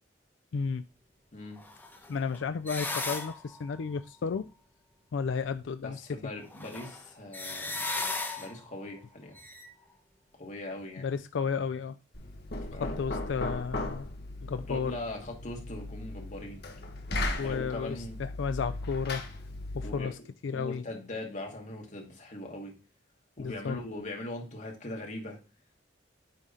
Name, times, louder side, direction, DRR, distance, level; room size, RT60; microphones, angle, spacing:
voice 1, 0.5-0.8 2.1-4.5 5.1-6.0 11.0-11.9 12.8-14.1 14.4-15.0 17.4-19.2 19.7-20.2 20.4-20.8 23.4-23.8, left 5 dB, 75° left, 0.4 m, -33 dB
voice 2, 1.3-1.6 5.8-7.9 8.4-9.4 10.4-11.0 12.7-13.0 14.7-16.6 17.4-18.2 19.8-20.1 20.5-22.7 23.4-25.4, left 1 dB, 40° left, 2.2 m, -40 dB
sound 1, 1.6-4.0 5.6-5.7 6.5-8.7 9.3-9.7, left 3 dB, 10° left, 1.1 m, -36 dB
Knock, 12.1-20.0, left 2 dB, 55° left, 1.3 m, -37 dB
9.1 x 3.8 x 3.9 m
head